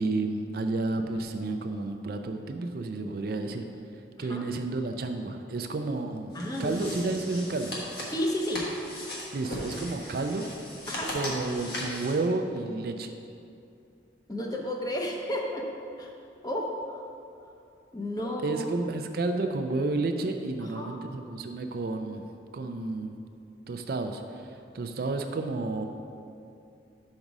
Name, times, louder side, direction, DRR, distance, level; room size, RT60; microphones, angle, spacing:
voice 1, 0.0-3.6 3.9-7.8 9.3-10.5 11.1-13.1 18.2-22.3 22.5-23.1 23.7-25.8, right 3 dB, 55° right, 6 dB, 0.4 m, -31 dB
sound 1, 6.3-12.2, left 1 dB, 60° left, 1.4 m, -38 dB
voice 2, 6.3-6.9 8.1-8.7 10.9-11.1 14.3-15.7 16.0-16.1 16.4-17.0 17.9-18.6 20.8-21.0, left 1 dB, 20° left, 0 dB, 0.6 m, -32 dB
5.3 x 5.0 x 6.0 m, 2.6 s
head